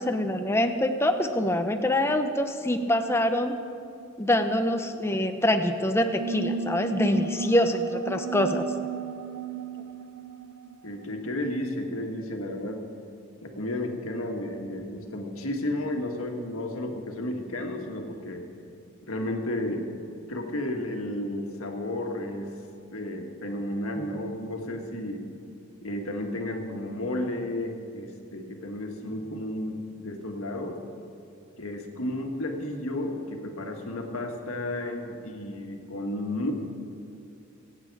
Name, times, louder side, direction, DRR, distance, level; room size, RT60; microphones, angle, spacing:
voice 1, 0.0-3.6 4.2-8.6, left 1 dB, 10° left, 6 dB, 0.7 m, -25 dB
sound 1, 6.2-11.4, right 5 dB, 85° right, 0.5 m, -35 dB
voice 2, 10.8-12.9 13.4-18.4 19.0-19.9 20.3-22.5 22.9-25.2 25.8-30.8 31.6-36.5, left 1 dB, 80° left, 3 dB, 1.7 m, -32 dB
24.5 x 8.5 x 4.8 m, 2.6 s
head